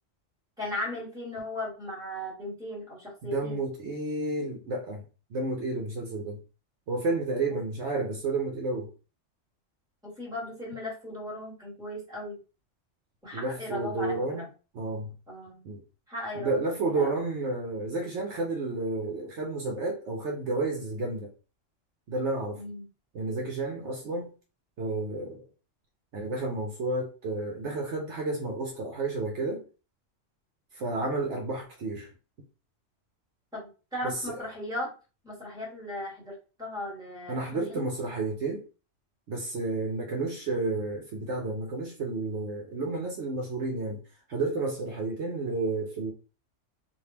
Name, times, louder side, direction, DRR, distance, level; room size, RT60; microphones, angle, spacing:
voice 1, 0.6-3.6 7.5-7.6 10.0-12.4 13.2-14.5 15.3-15.6 16.1-16.6 16.9-17.2 22.5-22.9 33.5-34.9 35.2-37.9, left 1 dB, 5° right, 1.6 m, -37 dB
voice 2, 3.2-5.0 5.3-6.4 6.9-8.9 13.3-14.5 14.7-15.1 15.6-15.8 16.4-21.3 22.1-22.6 23.1-24.3 24.8-25.5 26.1-29.6 30.7-32.1 34.0-34.5 37.3-38.6 39.3-44.0 44.3-46.1, right 3 dB, 65° right, 1.0 m, -31 dB
3.4 x 2.7 x 2.8 m
omnidirectional pair, 1.3 m